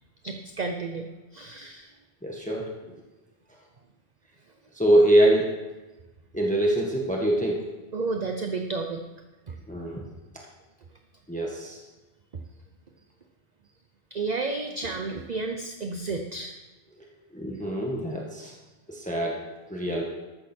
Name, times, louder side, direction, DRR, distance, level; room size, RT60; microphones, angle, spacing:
voice 1, 0.2-1.1 1.3-1.9 7.9-9.0 9.5-9.6 12.3-12.4 14.1-16.6, right 3 dB, 40° right, 4 dB, 0.9 m, -31 dB
voice 2, 2.2-2.9 4.7-5.5 6.3-7.7 9.7-10.0 11.3-11.8 17.0-17.1 17.3-18.5 18.9-19.4 19.7-20.0, right 1 dB, 5° left, -2 dB, 1.6 m, -24 dB
13.5 x 13.0 x 4.5 m, 1.1 s
omnidirectional pair, 1.1 m